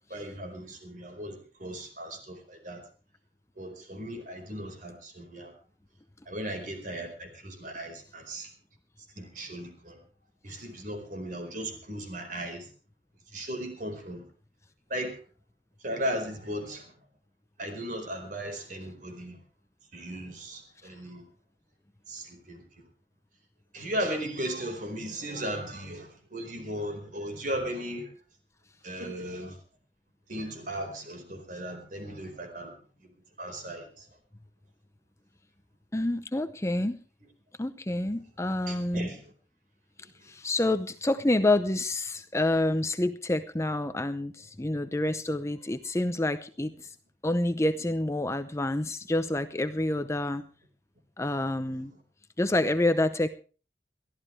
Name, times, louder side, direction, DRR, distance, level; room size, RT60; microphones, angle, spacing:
voice 1, 0.1-2.8 3.6-5.5 6.3-8.5 9.2-10.0 10.4-12.7 13.3-14.3 14.9-15.2 15.8-16.9 17.6-19.4 19.9-21.2 22.1-22.6 23.7-28.1 28.8-29.6 30.3-32.7 33.4-34.1 38.7-39.3, right 1 dB, 50° right, 6 dB, 4.6 m, -36 dB
voice 2, 35.9-37.0 37.6-39.1 40.2-46.9 47.2-50.4 51.2-51.9 52.4-53.3, left 1 dB, 15° left, 10 dB, 0.7 m, -28 dB
22.5 x 14.5 x 3.3 m, 0.36 s
head